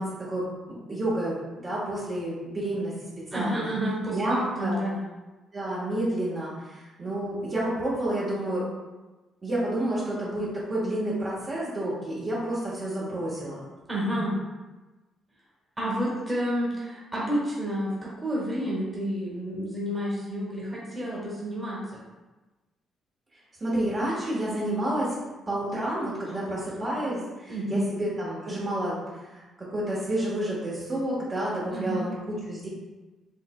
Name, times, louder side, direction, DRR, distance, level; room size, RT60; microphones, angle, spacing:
voice 1, 0.0-2.9 3.3-3.7 4.1-4.8 5.5-8.6 9.4-13.6 23.6-25.2 25.5-29.4 29.7-32.7, right 1 dB, 30° right, -8 dB, 1.3 m, -30 dB
voice 2, 3.3-5.0 13.9-14.4 15.8-22.0 26.2-26.9 27.5-27.8 31.7-32.0, equal, 15° right, -6 dB, 1.4 m, -30 dB
5.1 x 3.2 x 2.2 m, 1.2 s
cardioid pair, 115°, 0 cm